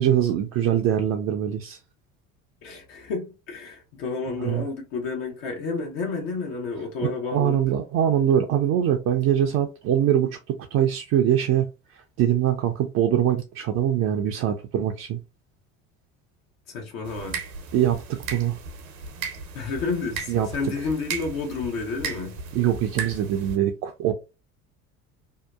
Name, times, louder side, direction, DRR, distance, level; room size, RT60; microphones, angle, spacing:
voice 1, 0.0-1.8 4.4-4.6 7.0-15.2 17.7-18.6 20.3-20.5 22.5-24.1, right 10 dB, 40° right, 0.4 m, -23 dB
voice 2, 2.6-7.6 16.7-17.4 19.5-22.4, left 4 dB, 55° left, 0.8 m, -30 dB
sound 1, 17.0-23.6, right 5 dB, 80° right, 0.7 m, -36 dB
2.7 x 2.2 x 2.2 m
hypercardioid pair, 65°, 42 cm